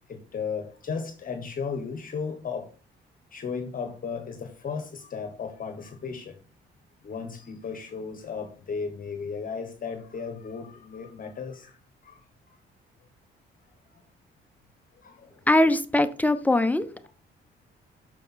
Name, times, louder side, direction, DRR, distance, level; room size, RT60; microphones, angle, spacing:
voice 1, 0.1-2.7 3.3-6.4 7.0-11.8 12.0-12.2 13.9-14.0 15.0-15.3, left 5 dB, 45° left, 7 dB, 1.2 m, -35 dB
voice 2, 15.5-17.1, left 1 dB, 10° left, 10 dB, 0.8 m, -22 dB
6.5 x 6.3 x 4.1 m, 0.40 s
cardioid pair, 90°, 20 cm